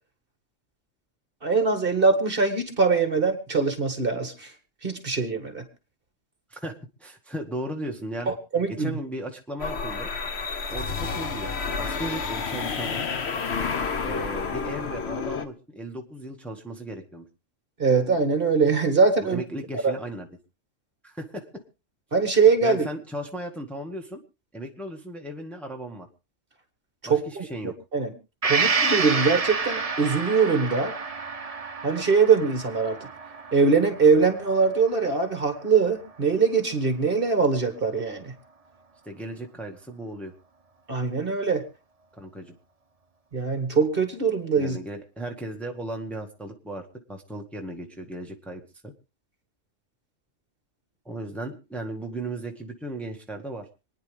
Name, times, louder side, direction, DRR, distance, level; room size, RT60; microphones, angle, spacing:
voice 1, 1.4-4.5 4.8-5.6 8.3-8.9 17.8-19.4 19.8-19.9 22.1-22.9 27.0-27.5 27.9-28.1 28.5-30.9 31.8-33.0 33.5-38.3 40.9-41.6 43.3-44.8, right 5 dB, 45° right, 7 dB, 2.1 m, -22 dB
voice 2, 6.5-8.3 8.7-10.1 10.7-13.0 14.0-17.2 19.2-20.3 21.0-21.6 22.6-24.2 24.5-26.1 27.0-27.8 39.0-40.3 42.2-42.6 44.6-48.9 51.0-53.7, right 1 dB, ahead, 1 dB, 1.7 m, -36 dB
sound 1, 9.6-15.5, left 5 dB, 60° left, 1.2 m, -30 dB
Gong, 28.4-36.1 36.4-36.5, right 4 dB, 30° right, 1.1 m, -29 dB
27.0 x 9.8 x 3.4 m, 0.31 s
omnidirectional pair, 1.3 m